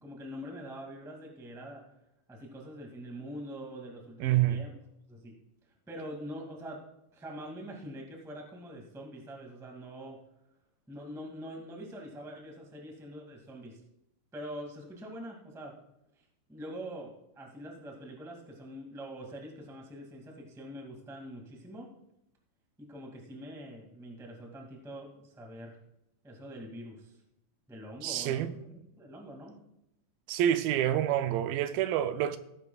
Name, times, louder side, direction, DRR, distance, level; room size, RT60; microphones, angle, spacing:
voice 1, 0.0-1.8 2.3-4.7 5.1-5.3 5.9-6.8 7.1-10.2 10.9-13.8 14.3-15.7 16.2-16.3 16.5-21.9 22.8-25.8 26.2-27.2 27.7-29.6, equal, ahead, 0.7 m, -44 dB
voice 2, 4.2-4.6 28.0-28.6 30.3-32.4, right 11 dB, 80° right, 2.3 m, -27 dB
18.0 x 9.9 x 2.3 m
omnidirectional pair, 4.3 m